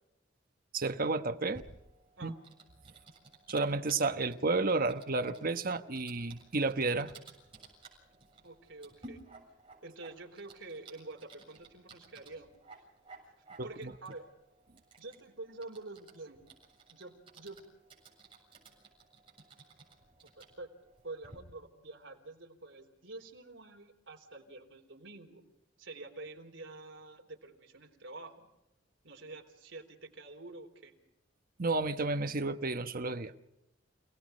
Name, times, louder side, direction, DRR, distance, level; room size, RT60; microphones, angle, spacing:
voice 1, 0.7-1.6 2.2-2.3 3.5-7.1 13.6-13.9 31.6-33.3, right 3 dB, 50° right, 9 dB, 1.1 m, -31 dB
Typing, 1.5-21.4, right 3 dB, 30° right, 7.3 m, -57 dB
voice 2, 8.4-9.2 9.8-12.5 13.6-14.3 15.0-16.4 16.9-17.6 20.4-20.7 21.0-25.4 25.8-28.5 29.0-30.9, right 2 dB, 70° right, 2 dB, 3.9 m, -47 dB
29.5 x 18.5 x 5.3 m, 0.88 s
head